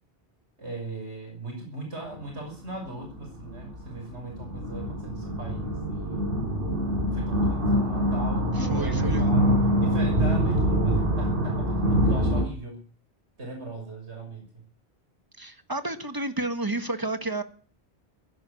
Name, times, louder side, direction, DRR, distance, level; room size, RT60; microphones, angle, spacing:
voice 1, 0.6-6.3 7.1-12.8 13.4-14.6, right 2 dB, 80° right, 1 dB, 6.7 m, -39 dB
sound 1, 2.1-2.3 2.9-12.4, equal, 55° right, 6.9 m, -25 dB
voice 2, 8.6-9.3 15.4-17.4, right 2 dB, 20° right, 9 dB, 1.6 m, -31 dB
16.0 x 11.0 x 8.4 m, 0.43 s
omnidirectional pair, 1.1 m